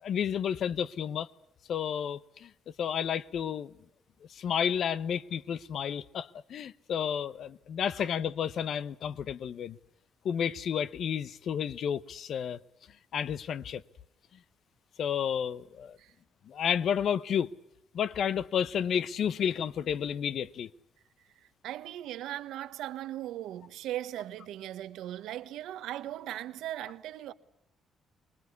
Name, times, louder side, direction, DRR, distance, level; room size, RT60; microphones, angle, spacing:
voice 1, 0.0-1.3 1.7-2.5 2.8-3.7 4.3-9.8 10.2-12.6 13.1-13.8 15.0-16.0 16.5-17.5 17.9-20.7, left 8 dB, 65° left, 0.9 m, -31 dB
voice 2, 21.4-27.3, right 13 dB, 85° right, 1.2 m, -38 dB
24.5 x 20.5 x 8.3 m
cardioid pair, 90°, 0 cm